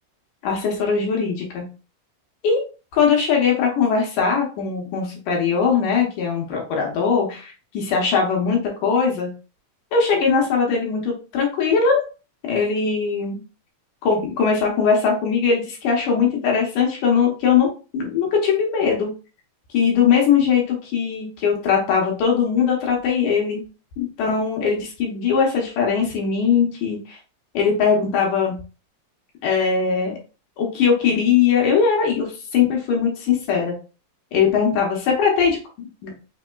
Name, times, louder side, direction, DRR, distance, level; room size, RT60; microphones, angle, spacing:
voice 1, 0.4-1.6 2.4-2.6 2.9-9.3 9.9-12.0 12.4-13.4 14.0-19.1 19.7-23.6 24.0-27.2 27.5-28.5 29.4-30.2 30.6-33.7 34.3-35.5 35.8-36.1, left 6 dB, 70° left, 0 dB, 2.3 m, -20 dB
5.3 x 3.5 x 2.2 m, 0.34 s
omnidirectional pair, 4.1 m